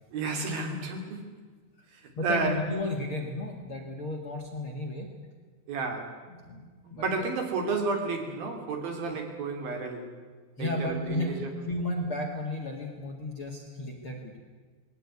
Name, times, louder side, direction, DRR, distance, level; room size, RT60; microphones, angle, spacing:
voice 1, 0.1-1.2 1.9-2.6 5.7-6.1 6.9-10.1 10.6-11.5, right 4 dB, 60° right, 3 dB, 4.1 m, -31 dB
voice 2, 2.2-5.1 6.4-7.3 10.6-14.4, left 1 dB, 40° left, 0 dB, 2.1 m, -33 dB
21.0 x 17.5 x 9.6 m, 1.5 s
omnidirectional pair, 5.0 m